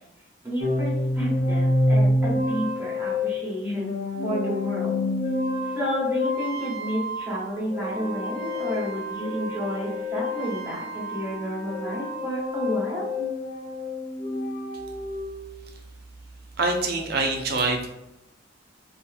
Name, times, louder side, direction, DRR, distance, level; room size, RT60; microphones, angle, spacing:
voice 1, 0.4-3.9 4.2-5.0 5.7-13.1, equal, 15° right, -7 dB, 1.0 m, -31 dB
sound 1, 0.6-11.4 11.7-15.6, left 1 dB, 40° left, 0.5 m, -28 dB
Wind instrument woodwind instrument, 7.8-12.2, left 3 dB, 85° left, 1.2 m, -43 dB
voice 2, 16.6-17.9, right 3 dB, 55° right, 2 dB, 0.5 m, -25 dB
2.7 x 2.4 x 2.3 m, 0.86 s
head